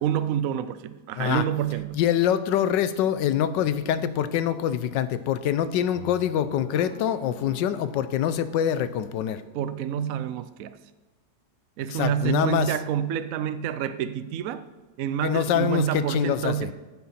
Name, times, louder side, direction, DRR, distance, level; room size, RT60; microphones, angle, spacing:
voice 1, 0.0-2.0 9.5-10.8 11.8-14.6 15.0-16.7, right 10 dB, 70° right, 12 dB, 0.8 m, -28 dB
voice 2, 1.9-9.4 11.9-12.7 15.2-16.7, left 10 dB, 85° left, 13 dB, 1.3 m, -25 dB
sound 1, 5.9-10.1, equal, 35° left, 0.9 m, -46 dB
9.6 x 8.4 x 4.2 m, 1.2 s
omnidirectional pair, 1.9 m